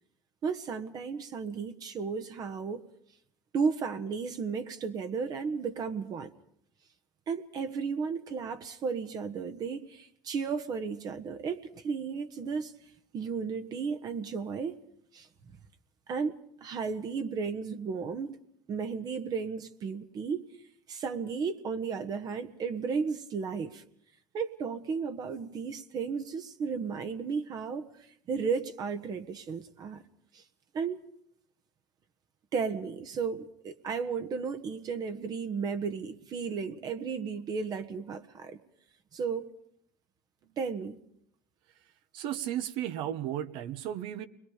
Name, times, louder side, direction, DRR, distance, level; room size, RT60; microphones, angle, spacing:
voice 1, 0.4-2.8 3.5-6.3 7.3-12.7 13.1-14.8 15.1-15.3 16.1-16.3 16.6-18.4 18.7-20.4 20.9-23.8 24.3-27.9 28.3-30.0 30.3-30.4 30.7-31.0 32.5-38.6 39.1-39.5 40.6-41.0, right 5 dB, 45° right, 1.5 m, -34 dB
voice 2, 42.1-44.3, right 11 dB, 65° right, 1.4 m, -34 dB
29.5 x 22.0 x 5.1 m
supercardioid pair, 90°, 9 cm